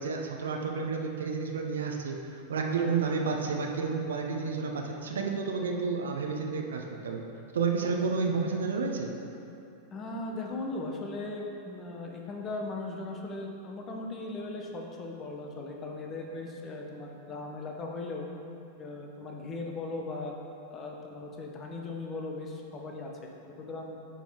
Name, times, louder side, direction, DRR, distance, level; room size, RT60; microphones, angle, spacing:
voice 1, 0.0-7.2 7.5-9.1, right 5 dB, 65° right, 2 dB, 0.8 m, -31 dB
voice 2, 9.9-18.3 18.8-20.4 20.7-23.3 23.6-23.9, left 2 dB, 25° left, 1 dB, 0.9 m, -38 dB
9.2 x 4.0 x 4.8 m, 2.7 s
figure-of-eight pair, 90°, 0 cm